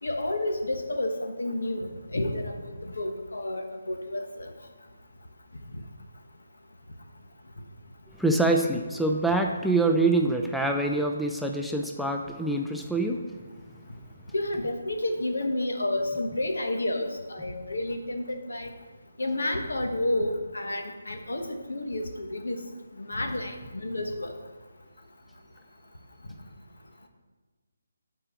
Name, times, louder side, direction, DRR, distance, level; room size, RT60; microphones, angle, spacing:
voice 1, 0.0-4.5 14.3-18.7 19.2-22.6 22.9-24.3, left 1 dB, 80° left, 5 dB, 1.3 m, -30 dB
voice 2, 8.1-13.3, right 2 dB, ahead, 2 dB, 0.4 m, -25 dB
8.7 x 4.6 x 6.8 m, 1.3 s
figure-of-eight pair, 155°, 0 cm